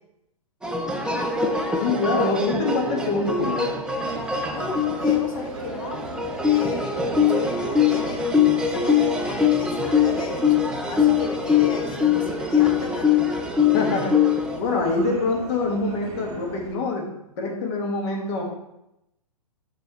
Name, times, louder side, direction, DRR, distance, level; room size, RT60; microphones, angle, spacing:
sound 1, 0.6-14.6, left 6 dB, 5° right, 0.5 m, -22 dB
voice 1, 1.8-3.7 13.7-14.2 14.6-17.1 17.4-18.4, left 3 dB, 45° left, 0 dB, 1.6 m, -25 dB
Subway metro underground, 4.0-16.8, right 1 dB, 45° right, 2.2 m, -39 dB
voice 2, 4.5-6.0 6.5-8.3 8.7-10.6 10.9-13.2, left 4 dB, 60° left, 3 dB, 1.3 m, -35 dB
6.6 x 6.3 x 3.1 m, 0.86 s
hypercardioid pair, 125°, 19 cm